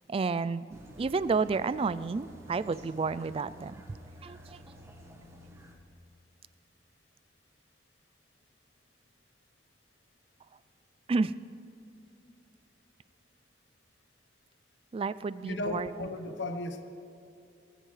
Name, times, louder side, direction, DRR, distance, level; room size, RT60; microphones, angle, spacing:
voice 1, 0.1-3.7 4.2-4.6 11.1-11.3 14.9-16.1, right 4 dB, 30° right, 16 dB, 0.3 m, -31 dB
sound 1, 0.7-5.8, right 1 dB, 15° right, 1.3 m, -51 dB
voice 2, 15.4-16.8, left 2 dB, 70° left, 8 dB, 1.1 m, -35 dB
19.5 x 17.0 x 3.3 m, 2.7 s
head